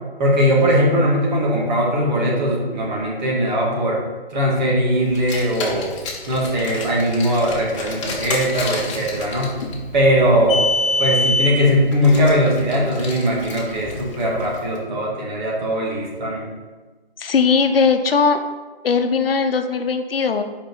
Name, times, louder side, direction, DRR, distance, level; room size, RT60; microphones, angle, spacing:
voice 1, 0.2-4.0 4.3-5.9 6.3-9.6 9.9-10.7 11.0-16.5, equal, 45° right, -3 dB, 2.3 m, -19 dB
Car, 5.1-14.6, left 2 dB, 30° left, 1.2 m, -27 dB
voice 2, 17.2-18.4 18.8-20.4, left 5 dB, 65° left, 7 dB, 0.9 m, -18 dB
5.3 x 5.0 x 6.2 m, 1.3 s
hypercardioid pair, 145°, 31 cm